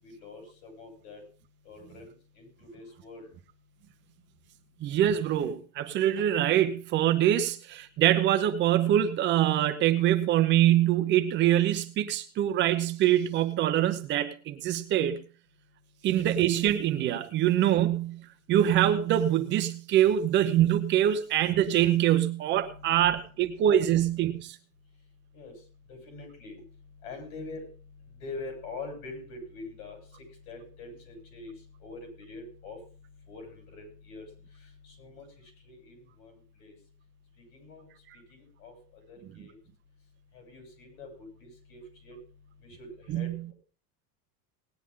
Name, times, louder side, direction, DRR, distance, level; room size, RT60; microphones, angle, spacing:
voice 1, 0.0-1.2 1.6-2.5 2.7-3.3 22.7-23.1 25.3-25.5 25.9-26.6 27.0-27.6 28.2-30.0 30.5-31.5 31.8-32.8 33.3-34.3 34.8-35.3 35.6-36.3 36.6-36.7 37.5-37.9 38.3-38.8 39.1-39.5 40.3-41.1 41.4-42.2 42.6-42.9 43.1-43.5, left 3 dB, 85° left, 7.5 m, -44 dB
voice 2, 4.8-15.2 16.0-18.2 18.5-24.6 43.1-43.3, right 11 dB, 25° right, 0.8 m, -24 dB
18.5 x 10.0 x 3.7 m
supercardioid pair, 175°, 42 cm